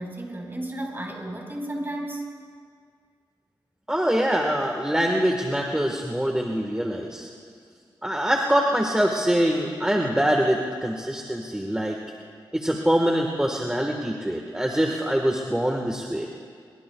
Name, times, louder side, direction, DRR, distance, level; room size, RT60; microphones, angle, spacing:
voice 1, 0.0-2.3, right 1 dB, 25° right, 0 dB, 4.5 m, -33 dB
voice 2, 3.9-7.3 8.0-12.0 12.5-16.3, equal, 10° right, 1 dB, 1.5 m, -24 dB
23.0 x 23.0 x 2.3 m, 2.1 s
cardioid pair, 70°, 9 cm